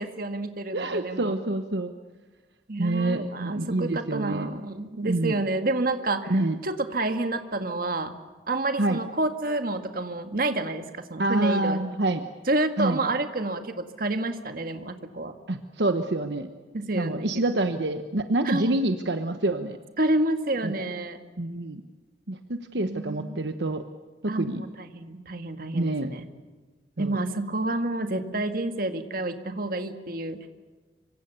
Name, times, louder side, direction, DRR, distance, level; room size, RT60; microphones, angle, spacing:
voice 1, 0.0-1.3 2.7-6.4 6.6-8.1 8.5-11.8 12.5-15.3 16.7-17.4 18.4-18.8 20.0-21.2 22.8-23.4 24.3-26.3 27.0-30.5, right 2 dB, 55° right, 7 dB, 1.9 m, -29 dB
voice 2, 0.7-1.9 2.8-4.5 5.0-5.4 6.3-6.6 8.8-9.0 11.2-12.2 12.8-13.0 15.5-16.5 16.9-19.8 20.6-20.7 21.4-21.8 22.3-23.8 24.2-24.6 25.7-26.1 27.0-27.2, right 2 dB, 75° right, 7 dB, 1.1 m, -27 dB
26.0 x 24.5 x 7.0 m, 1.3 s
head